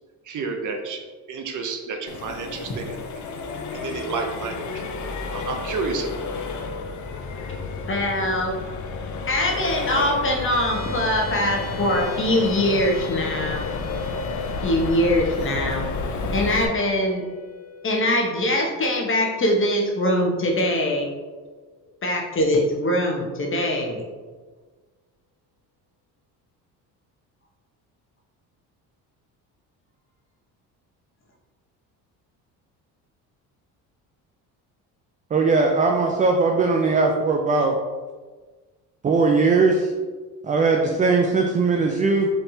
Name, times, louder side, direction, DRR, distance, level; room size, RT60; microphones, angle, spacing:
voice 1, 0.3-1.0 1.3-3.3 3.7-4.9 5.3-6.2, right 4 dB, 50° right, 4 dB, 0.7 m, -30 dB
Accelerating revving vroom, 2.1-16.7, left 4 dB, 50° left, 0.6 m, -31 dB
voice 2, 7.9-8.5 9.3-13.7 14.6-15.9 16.3-17.2 17.8-21.1 22.0-24.0, left 1 dB, 30° left, 0 dB, 1.0 m, -22 dB
sound 1, 10.5-23.1, left 6 dB, 65° left, 1.2 m, -43 dB
voice 3, 35.3-37.8 39.0-39.9 40.4-42.3, right 4 dB, 20° right, 2 dB, 0.3 m, -19 dB
4.3 x 3.3 x 2.7 m, 1.4 s
supercardioid pair, 80°, 40 cm